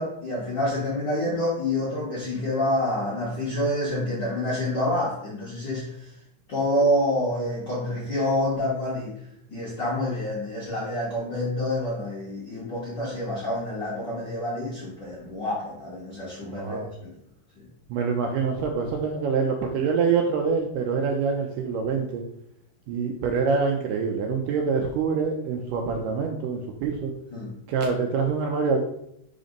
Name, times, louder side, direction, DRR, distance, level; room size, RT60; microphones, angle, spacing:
voice 1, 0.0-6.1 6.5-9.1 9.5-17.1 17.6-17.7 27.3-27.5, left 1 dB, 75° left, -6 dB, 1.0 m, -27 dB
voice 2, 16.5-16.9 17.9-22.2 22.9-27.1 27.7-28.8, right 5 dB, 80° right, 2 dB, 2.1 m, -25 dB
5.1 x 3.9 x 5.1 m, 0.76 s
omnidirectional pair, 4.1 m